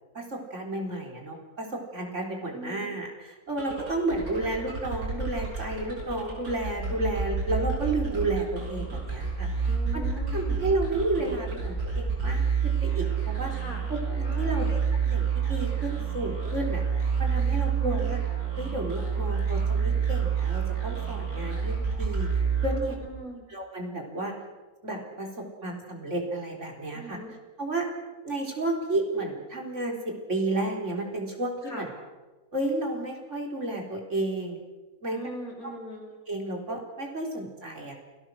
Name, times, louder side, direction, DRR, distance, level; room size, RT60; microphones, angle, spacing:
voice 1, 0.1-10.1 10.3-13.5 13.9-16.8 17.2-18.2 18.6-22.3 22.6-23.0 23.5-24.3 24.8-27.2 27.6-27.9 28.2-31.9 32.5-34.6 35.0-35.2 36.3-37.9, right 2 dB, 50° right, 0 dB, 4.3 m, -32 dB
voice 2, 2.5-2.9 9.6-10.6 13.5-13.8 14.3-14.7 17.6-18.0 22.6-23.4 26.9-27.3 31.6-31.8 35.1-36.1, equal, 70° left, 1 dB, 6.0 m, -40 dB
sound 1, 3.5-23.2, right 6 dB, 80° right, 7.0 m, -29 dB
28.5 x 19.0 x 6.4 m, 1.2 s
omnidirectional pair, 1.6 m